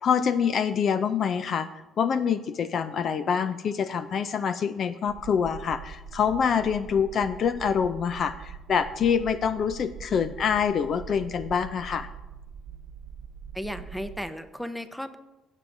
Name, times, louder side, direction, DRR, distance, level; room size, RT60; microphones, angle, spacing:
voice 1, 0.0-1.7 2.0-12.1, left 7 dB, 50° left, 12 dB, 0.4 m, -26 dB
sound 1, 5.1-14.2, right 7 dB, 80° right, 0.9 m, -43 dB
voice 2, 13.5-15.2, equal, 5° left, 10 dB, 0.6 m, -35 dB
16.0 x 7.3 x 2.6 m, 1.1 s
cardioid pair, 110°, 0 cm